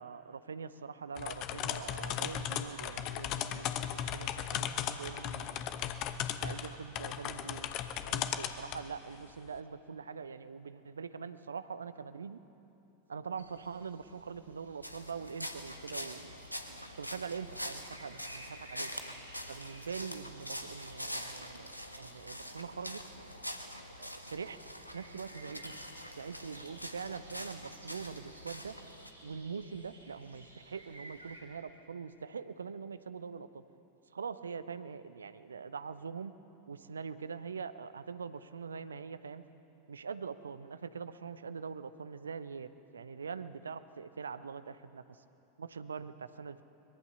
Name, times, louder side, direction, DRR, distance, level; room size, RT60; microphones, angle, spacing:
voice 1, 0.0-5.6 6.4-7.7 8.0-12.4 13.1-16.3 16.7-18.9 19.5-21.7 22.0-23.0 24.0-24.6 24.9-25.7 26.1-28.8 29.2-33.6 34.1-36.3 36.7-39.4 39.9-45.2 45.6-46.6, right 6 dB, 70° right, 13 dB, 0.8 m, -43 dB
sound 1, 1.2-8.9, left 10 dB, 40° left, 1.0 m, -36 dB
sound 2, 13.4-31.4, right 1 dB, 90° right, 4.7 m, -56 dB
sound 3, 14.8-29.1, equal, 90° left, 1.4 m, -44 dB
23.0 x 22.0 x 6.9 m, 2.9 s
figure-of-eight pair, 90°, 0 cm